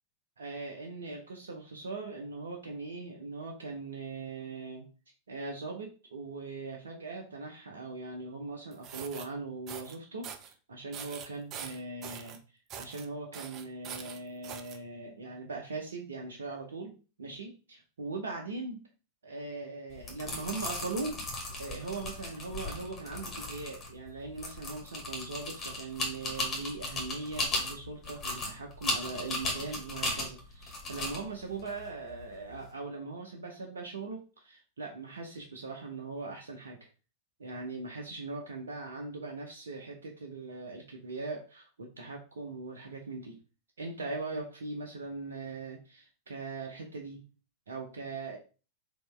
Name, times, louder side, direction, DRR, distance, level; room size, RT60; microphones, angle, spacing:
voice 1, 0.4-4.9 5.3-18.8 19.2-21.2 21.6-36.9 37.4-43.4 43.8-47.2 47.7-48.4, right 3 dB, 70° right, 1 dB, 0.7 m, -40 dB
sound 1, 8.7-9.3 9.7-10.0 10.2-10.5 10.9-12.4 12.7-13.1 13.3-14.8, right 8 dB, 35° right, 0.5 m, -43 dB
sound 2, 19.9-32.7, left 2 dB, 25° left, 1.7 m, -37 dB
4.4 x 2.9 x 3.2 m, 0.34 s
figure-of-eight pair, 90°, 0 cm